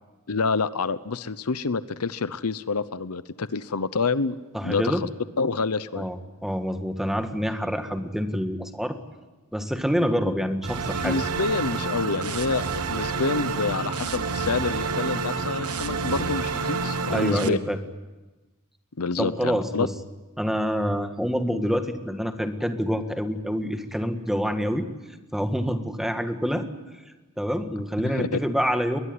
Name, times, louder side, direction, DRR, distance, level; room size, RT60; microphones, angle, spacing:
voice 1, 0.3-5.0 5.4-6.1 11.0-17.6 19.0-19.9 28.0-28.4, left 4 dB, 75° left, 15 dB, 0.9 m, -27 dB
voice 2, 4.5-5.0 5.9-9.0 9.5-11.2 17.1-17.8 19.2-19.9 20.4-24.9 25.3-26.7 27.4-29.0, equal, ahead, 7 dB, 1.6 m, -26 dB
sound 1, 10.6-17.5, right 4 dB, 85° right, 1.4 m, -28 dB
21.5 x 21.0 x 9.7 m, 1.2 s
head